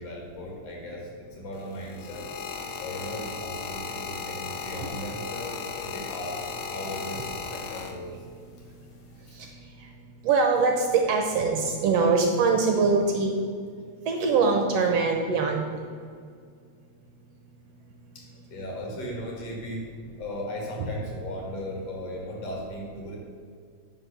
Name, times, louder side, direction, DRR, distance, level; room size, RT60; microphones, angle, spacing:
voice 1, 0.0-2.3 2.8-8.1 18.1-18.2 18.5-19.9 20.2-23.2, left 1 dB, 60° left, -1 dB, 2.9 m, -37 dB
sound 1, 1.5-8.4 9.2-9.5, left 6 dB, 80° left, 1.2 m, -36 dB
voice 2, 10.3-13.4 14.1-15.8, right 4 dB, 70° right, 3 dB, 1.7 m, -23 dB
9.7 x 4.9 x 6.8 m, 2.2 s
omnidirectional pair, 3.3 m